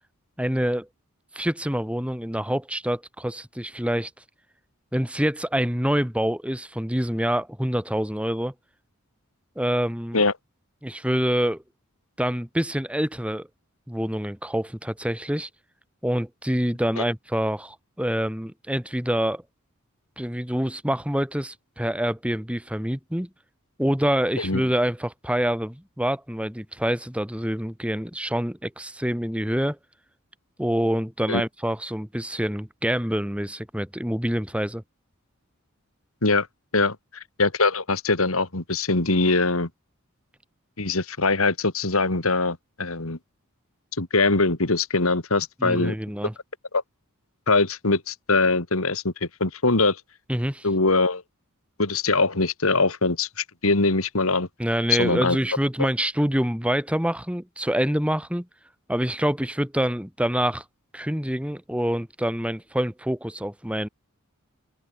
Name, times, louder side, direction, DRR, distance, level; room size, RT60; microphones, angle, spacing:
voice 1, 0.4-0.9 1.3-4.1 4.9-8.5 9.6-10.2 10.8-11.6 12.2-13.5 13.9-15.5 16.0-19.4 20.2-23.3 23.8-29.8 30.6-34.8 45.6-46.3 50.3-50.7 54.6-58.5 58.9-60.6 60.9-63.9, equal, 5° right, 2.4 m, -26 dB
voice 2, 36.7-39.7 40.8-43.2 44.0-45.9 46.7-46.8 47.5-50.0 50.6-51.2 51.8-54.5 54.9-55.4, left 3 dB, 70° left, 2.7 m, -22 dB
head